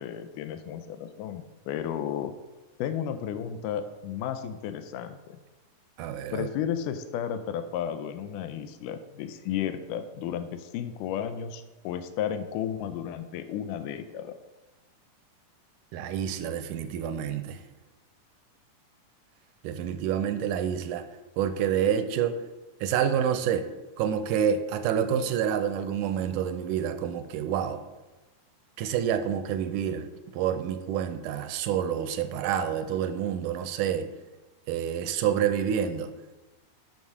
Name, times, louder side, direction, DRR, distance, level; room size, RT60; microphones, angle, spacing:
voice 1, 0.0-2.3 2.8-5.4 6.3-14.4, left 9 dB, 85° left, 10 dB, 2.1 m, -33 dB
voice 2, 6.0-6.5 15.9-17.6 19.6-21.0 21.4-22.4 22.8-23.7 24.0-27.8 28.8-34.1 34.7-36.1, right 9 dB, 80° right, 9 dB, 2.1 m, -28 dB
8.8 x 6.4 x 4.8 m, 1.1 s
omnidirectional pair, 3.7 m